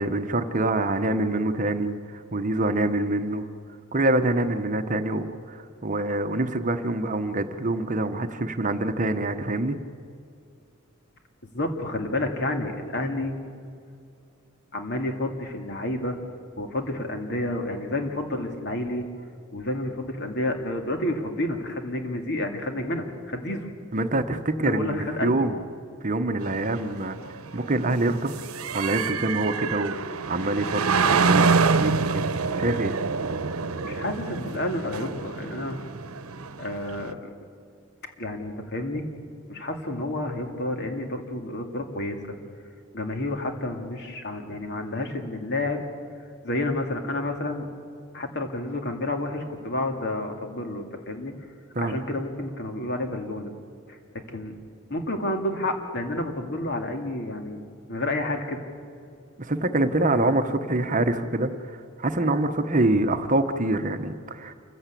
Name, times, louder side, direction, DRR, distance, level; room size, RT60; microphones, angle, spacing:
voice 1, 0.0-3.4 3.9-9.8 23.9-25.6 26.0-27.2 27.5-28.3 28.7-32.9 51.7-52.0 59.4-64.5, right 2 dB, 35° right, 8 dB, 1.1 m, -25 dB
voice 2, 11.5-13.3 14.7-16.2 16.6-19.0 19.5-23.7 24.6-25.5 33.8-35.8 36.6-37.3 38.2-39.1 39.5-42.2 42.9-45.8 46.4-47.7 48.1-51.3 51.8-53.5 53.9-54.5 54.9-57.6 57.9-58.6 60.1-60.3, left 1 dB, 55° left, 4 dB, 2.4 m, -30 dB
sound 1, 26.4-37.1, right 4 dB, 85° right, 0.9 m, -26 dB
27.5 x 15.0 x 8.4 m, 2.4 s
head